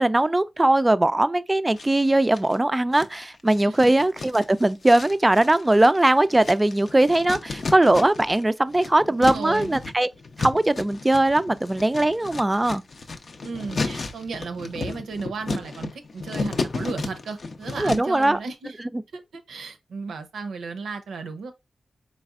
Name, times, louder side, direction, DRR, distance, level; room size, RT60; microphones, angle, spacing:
voice 1, 0.0-10.1 10.4-12.8 17.8-18.4, right 1 dB, 20° right, 0.3 m, -20 dB
sound 1, 1.8-2.6 2.9-8.4 8.7-18.2, left 3 dB, 60° left, 0.5 m, -33 dB
voice 2, 3.6-4.3 9.1-9.7 13.4-18.8 19.1-21.5, right 4 dB, 90° right, 0.6 m, -34 dB
4.0 x 3.3 x 2.3 m
cardioid pair, 50°, 0 cm